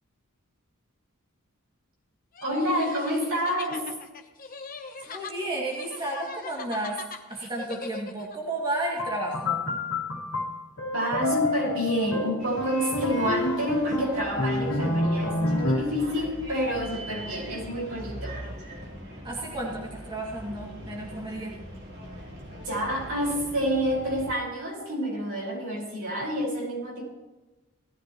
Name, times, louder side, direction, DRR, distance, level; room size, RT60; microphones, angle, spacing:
sound 1, 2.4-8.4, left 4 dB, 40° left, 1.0 m, -41 dB
voice 1, 2.4-3.9 10.9-18.4 22.6-27.0, equal, 70° right, -2 dB, 5.3 m, -28 dB
voice 2, 5.1-7.0 7.3-9.6 19.2-21.6, right 1 dB, 20° right, -4 dB, 2.4 m, -32 dB
sound 2, 9.0-16.1, left 2 dB, 65° left, 2.1 m, -28 dB
Bus, 12.4-24.3, equal, 45° right, 3.6 m, -41 dB
18.0 x 14.0 x 3.1 m, 1.1 s
head